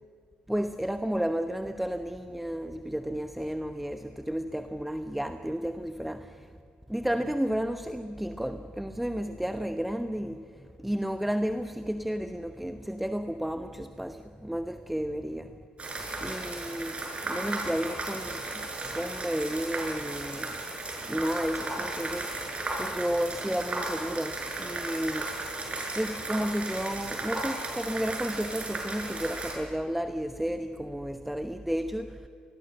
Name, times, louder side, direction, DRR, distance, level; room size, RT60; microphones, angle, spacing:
voice 1, 0.5-6.5 6.9-10.5 10.8-15.6 16.2-20.5 21.1-22.4 22.8-25.4 25.9-32.3, equal, 5° right, 1.0 m, -32 dB
sound 1, 15.8-29.6, right 2 dB, 30° right, 7.0 m, -35 dB
26.0 x 21.0 x 7.7 m
figure-of-eight pair, 50°, 4 cm